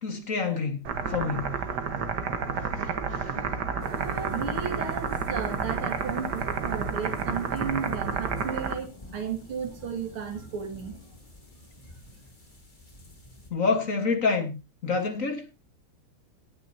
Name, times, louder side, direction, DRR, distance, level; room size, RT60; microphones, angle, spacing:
voice 1, 0.0-1.5 13.5-15.5, left 4 dB, 40° left, 1.8 m, -27 dB
sound 1, 0.8-8.7, right 5 dB, 55° right, 1.8 m, -30 dB
sound 2, 3.8-13.5, left 1 dB, 20° left, 2.8 m, -47 dB
voice 2, 3.9-10.9, right 6 dB, 90° right, 2.7 m, -34 dB
17.5 x 9.7 x 2.8 m
omnidirectional pair, 2.3 m